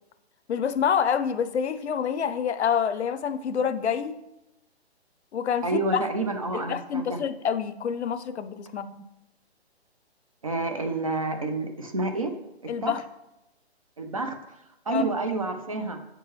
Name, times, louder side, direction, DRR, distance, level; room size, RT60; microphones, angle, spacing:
voice 1, 0.5-4.2 5.3-5.8 6.7-9.0 12.7-13.0 14.9-15.0, left 7 dB, 80° left, 12 dB, 0.6 m, -27 dB
voice 2, 5.6-7.2 10.4-12.4 12.6-12.9 14.0-14.6 14.9-16.0, right 2 dB, 35° right, 5 dB, 0.5 m, -29 dB
8.7 x 4.5 x 3.1 m, 0.92 s
hypercardioid pair, 170°, 33 cm